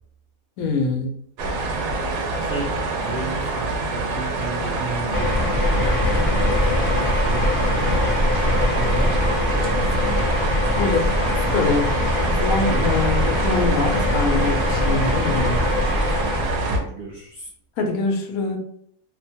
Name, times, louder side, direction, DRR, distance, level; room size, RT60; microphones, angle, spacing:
voice 1, 0.6-1.1 10.7-11.2 11.5-12.0 12.3-15.6 17.8-18.6, left 3 dB, 90° left, 3 dB, 1.1 m, -24 dB
sound 1, 1.4-16.8, right 3 dB, 90° right, 1.1 m, -26 dB
voice 2, 2.2-8.2 8.7-10.5 16.6-17.5, right 2 dB, 70° right, -3 dB, 0.5 m, -34 dB
sound 2, 5.1-16.7, left 1 dB, 55° left, 0.6 m, -22 dB
2.7 x 2.2 x 2.6 m, 0.66 s
omnidirectional pair, 1.5 m